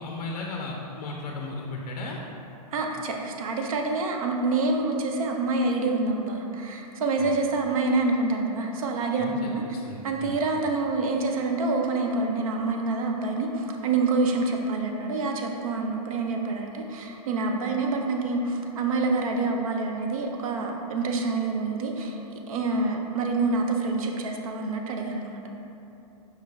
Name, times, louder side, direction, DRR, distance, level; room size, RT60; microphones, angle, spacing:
voice 1, 0.0-2.2 7.2-7.3 9.2-9.5 9.8-10.4, left 3 dB, 85° left, -1 dB, 0.5 m, -35 dB
voice 2, 2.7-9.6 10.0-25.4, right 3 dB, 60° right, 2 dB, 0.5 m, -27 dB
4.9 x 3.2 x 2.3 m, 2.8 s
hypercardioid pair, 165°, 20 cm